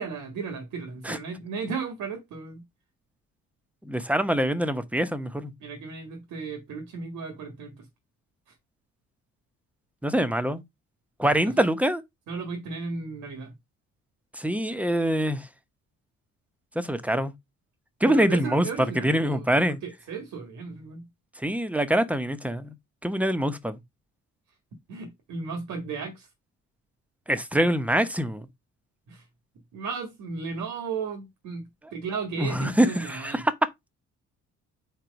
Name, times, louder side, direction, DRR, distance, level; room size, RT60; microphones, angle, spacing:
voice 1, 0.0-2.6 5.6-7.9 8.5-8.6 11.2-11.5 12.3-13.5 18.0-19.5 19.8-21.1 24.9-26.3 29.1-29.2 29.7-33.4, right 5 dB, 80° right, 1.7 m, -35 dB
voice 2, 3.8-5.5 10.0-10.6 11.2-12.0 14.3-15.5 16.7-17.3 18.0-18.7 19.0-19.8 21.4-22.7 23.0-23.8 27.3-28.5 32.4-33.5, right 1 dB, 5° right, 0.9 m, -24 dB
4.6 x 4.4 x 5.2 m
cardioid pair, 90°, 30 cm